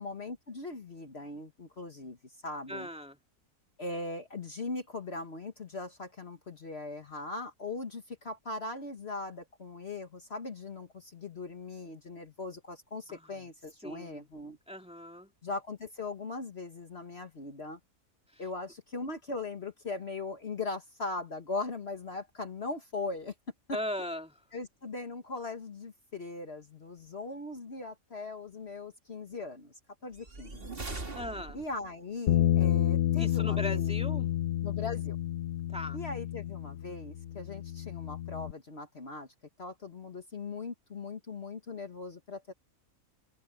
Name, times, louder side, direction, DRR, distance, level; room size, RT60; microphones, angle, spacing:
voice 1, 0.0-2.9 3.8-14.6 15.4-17.8 18.4-23.3 24.5-29.7 30.0-30.7 31.5-33.9 34.6-35.2 35.9-39.3 39.6-42.5, left 3 dB, 45° left, 1.8 m, -39 dB
voice 2, 2.7-3.2 13.1-13.4 13.8-14.3 14.7-15.3 18.3-18.4 23.7-24.4 31.1-31.6 33.2-34.3 35.7-36.0, left 1 dB, 5° right, 2.7 m, -39 dB
sound 1, 30.1-31.9, right 3 dB, 40° right, 2.5 m, -41 dB
Bass guitar, 32.3-38.5, left 11 dB, 65° left, 1.0 m, -30 dB
omnidirectional pair, 1.5 m